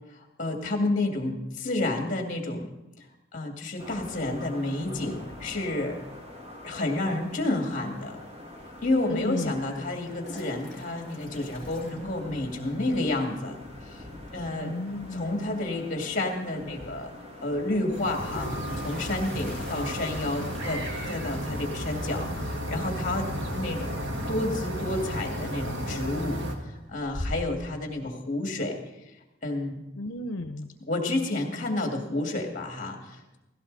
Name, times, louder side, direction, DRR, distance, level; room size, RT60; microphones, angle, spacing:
voice 1, 0.1-2.7 3.0-3.1 3.3-6.0 6.6-8.2 8.8-13.6 13.8-14.0 14.3-14.7 15.1-17.1 17.4-18.5 18.8-26.4 26.9-28.8 29.4-29.8 30.9-33.4, left 2 dB, 40° left, 3 dB, 2.3 m, -30 dB
sound 1, 3.8-20.7, left 1 dB, 30° right, 2.3 m, -44 dB
voice 2, 9.1-9.8 14.6-15.5 30.0-30.8, left 1 dB, 80° left, 8 dB, 0.7 m, -34 dB
Toilet flush, 10.0-12.7 13.0-13.1 13.4-13.5 13.7-14.1 15.9-16.0 16.3-16.4 17.9-24.6 24.9-25.4 25.8-26.3 26.7-27.7, left 1 dB, ahead, 5.0 m, -43 dB
sound 2, 17.9-26.5, equal, 60° right, 1.9 m, -33 dB
17.0 x 16.5 x 4.1 m, 0.99 s
head